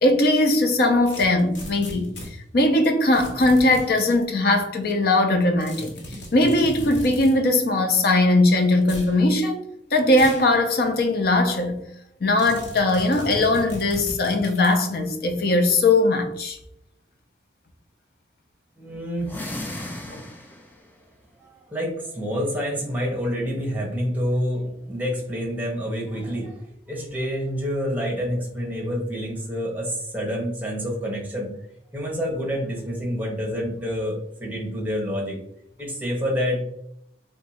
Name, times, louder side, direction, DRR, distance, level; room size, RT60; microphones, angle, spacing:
voice 1, 0.0-2.1 2.5-5.9 6.3-11.8 12.2-16.6 20.1-20.2, left 2 dB, 55° left, 0.6 m, -20 dB
sound 1, 1.1-2.3 3.1-4.1 5.6-7.4 8.8-9.1 10.1-10.5 10.9-11.0 12.4-14.8, equal, 90° left, 0.9 m, -37 dB
voice 2, 18.8-20.2 20.5-20.6 21.4-31.5 31.9-35.4 35.8-36.6, equal, 10° right, 0.9 m, -28 dB
sound 2, 19.2-20.8, left 1 dB, 10° left, 0.3 m, -35 dB
2.7 x 2.3 x 4.1 m
head